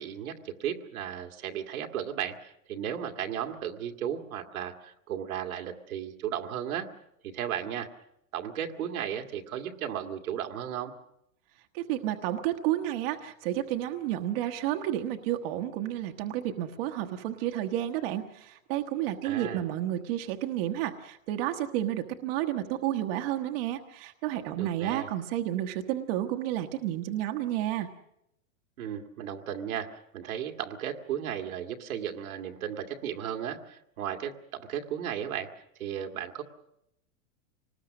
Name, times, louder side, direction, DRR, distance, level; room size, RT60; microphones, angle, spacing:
voice 1, 0.0-6.9 7.2-7.9 8.3-11.0 19.2-19.6 24.6-25.1 28.8-35.5 35.8-36.4, right 9 dB, 80° right, 4 dB, 2.0 m, -35 dB
voice 2, 11.7-27.9, right 12 dB, 45° right, 5 dB, 1.1 m, -31 dB
25.0 x 19.5 x 6.3 m, 0.79 s
supercardioid pair, 155°, 42 cm